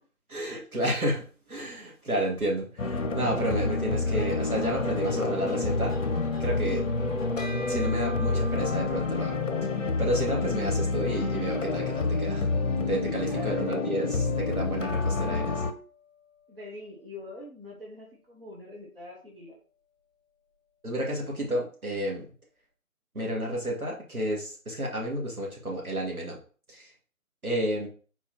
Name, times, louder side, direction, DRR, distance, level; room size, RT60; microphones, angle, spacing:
voice 1, 0.3-6.0 6.4-6.8 7.7-9.7 10.0-12.5 12.9-15.6 20.8-22.3 23.1-26.4 26.7-26.9 27.4-27.9, right 1 dB, 75° right, -2 dB, 2.1 m, -31 dB
sound 1, 2.8-15.7, left 3 dB, 60° left, 0.7 m, -28 dB
sound 2, 4.2-9.3, left 3 dB, 5° right, 1.2 m, -45 dB
Bell, 7.4-17.0, left 1 dB, 30° left, 0.9 m, -48 dB
voice 2, 13.3-13.8 16.5-19.6, left 1 dB, 40° right, -2 dB, 1.2 m, -44 dB
4.3 x 4.0 x 2.8 m, 0.39 s
figure-of-eight pair, 155°, 44 cm